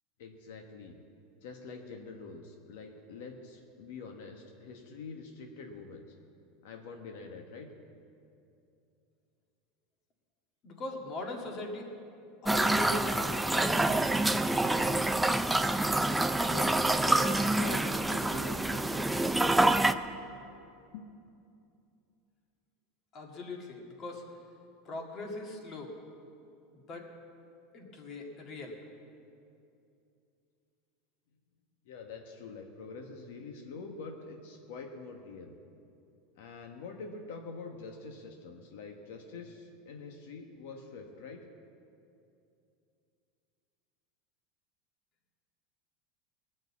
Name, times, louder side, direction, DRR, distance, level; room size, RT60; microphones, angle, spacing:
voice 1, 0.2-1.0 1.4-6.1 6.6-7.7 16.4-19.1 20.9-21.1 31.8-35.5 36.4-41.4, left 4 dB, 75° left, 3 dB, 1.2 m, -45 dB
voice 2, 10.6-11.9 12.4-14.0 23.1-24.2 24.9-25.9 26.9-27.1 27.7-28.8, left 2 dB, 35° left, 1 dB, 1.8 m, -40 dB
sound 1, 12.5-19.9, right 2 dB, 5° right, 0.3 m, -27 dB
19.0 x 6.6 x 8.3 m, 2.7 s
supercardioid pair, 155°, 0 cm